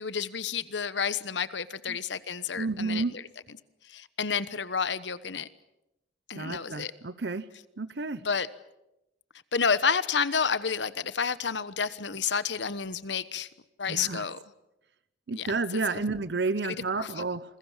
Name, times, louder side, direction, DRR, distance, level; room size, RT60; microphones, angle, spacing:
voice 1, 0.0-3.2 3.8-5.5 6.3-6.9 8.2-8.5 9.5-13.5 13.8-14.4 15.3-16.0 16.6-17.2, left 6 dB, 75° left, 15 dB, 1.2 m, -30 dB
voice 2, 2.6-3.1 6.3-7.4 7.8-8.2 13.9-14.2 15.3-17.4, right 3 dB, 65° right, 14 dB, 0.9 m, -31 dB
28.0 x 22.0 x 7.3 m, 0.90 s
head